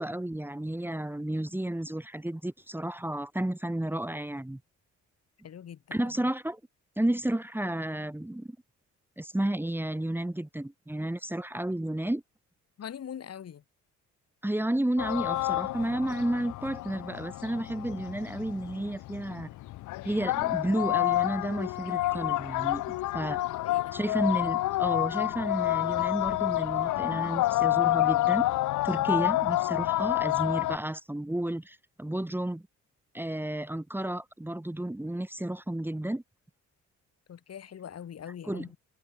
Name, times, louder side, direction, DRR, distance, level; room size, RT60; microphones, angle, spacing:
voice 1, 0.0-4.6 5.9-6.6 7.0-8.5 9.2-12.2 14.4-19.5 20.0-22.8 23.1-23.4 23.9-28.5 28.8-32.6 33.1-36.2 38.5-38.7, right 1 dB, 5° right, 2.0 m, -32 dB
voice 2, 5.4-6.3 12.8-13.6 23.5-24.0 37.3-38.8, left 9 dB, 55° left, 2.9 m, -43 dB
sound 1, 15.0-30.8, left 16 dB, 80° left, 0.9 m, -29 dB
cardioid pair, 90°, 30 cm